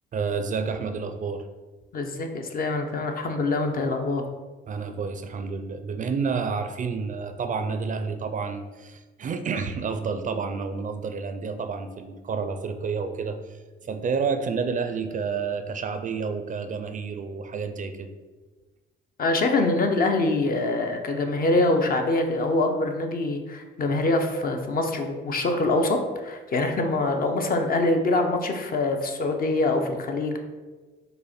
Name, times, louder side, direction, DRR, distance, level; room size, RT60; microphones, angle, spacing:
voice 1, 0.1-1.5 4.7-18.1, right 5 dB, 40° right, 8 dB, 0.4 m, -30 dB
voice 2, 1.9-4.2 19.2-30.4, left 2 dB, 45° left, 4 dB, 0.6 m, -24 dB
5.2 x 2.1 x 4.2 m, 1.3 s
cardioid pair, 90°, 20 cm